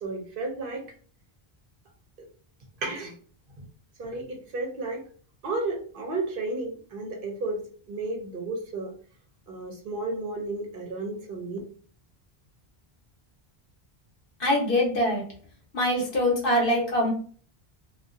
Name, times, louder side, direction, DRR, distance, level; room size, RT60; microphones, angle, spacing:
voice 1, 0.0-0.9 2.8-3.1 4.0-5.1 5.4-8.9 9.5-11.6, right 2 dB, 65° right, 1 dB, 0.8 m, -33 dB
voice 2, 14.4-15.2 15.7-17.1, left 1 dB, 60° left, -1 dB, 1.1 m, -23 dB
2.6 x 2.3 x 2.4 m, 0.43 s
omnidirectional pair, 1.0 m